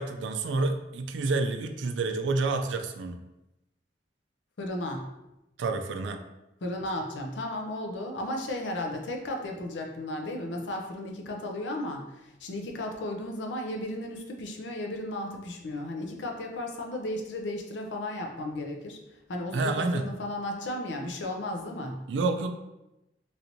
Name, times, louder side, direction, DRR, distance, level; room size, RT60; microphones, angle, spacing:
voice 1, 0.0-3.2 5.6-6.2 19.5-20.1 22.1-22.5, right 3 dB, 85° right, 7 dB, 0.3 m, -29 dB
voice 2, 4.6-5.1 6.6-19.0 19.3-22.0, left 1 dB, 85° left, 2 dB, 0.5 m, -34 dB
3.1 x 2.6 x 2.9 m, 0.93 s
head